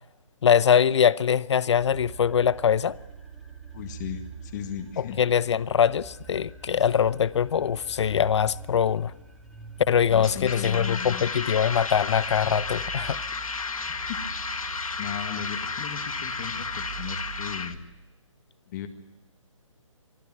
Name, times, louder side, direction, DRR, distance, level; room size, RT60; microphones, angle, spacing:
voice 1, 0.4-3.0 5.0-9.1 9.9-13.2, left 8 dB, 55° left, 0.7 m, -23 dB
sound 1, 1.8-17.8, right 5 dB, ahead, 2.3 m, -44 dB
voice 2, 3.7-5.2 10.1-11.2 13.9-14.2 15.0-17.8 18.7-18.9, left 9 dB, 35° left, 1.9 m, -36 dB
sound 2, 10.1-17.7, left 4 dB, 85° left, 1.7 m, -33 dB
24.0 x 13.5 x 9.4 m
hypercardioid pair, 145°, 17 cm